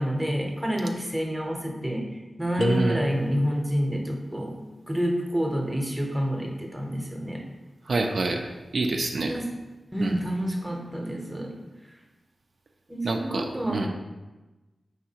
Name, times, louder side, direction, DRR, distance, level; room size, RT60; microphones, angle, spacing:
voice 1, 0.0-2.1 2.4-7.4 9.3-9.5 9.9-11.5 12.9-13.9, equal, 5° right, 1 dB, 0.7 m, -28 dB
sound 1, 2.6-3.8, left 2 dB, 30° left, 0.5 m, -31 dB
voice 2, 2.6-3.0 7.9-8.4 8.7-9.4 10.0-10.1 13.0-13.9, right 3 dB, 75° right, 2 dB, 0.3 m, -26 dB
4.6 x 3.3 x 2.8 m, 1.2 s
cardioid pair, 60°, 0 cm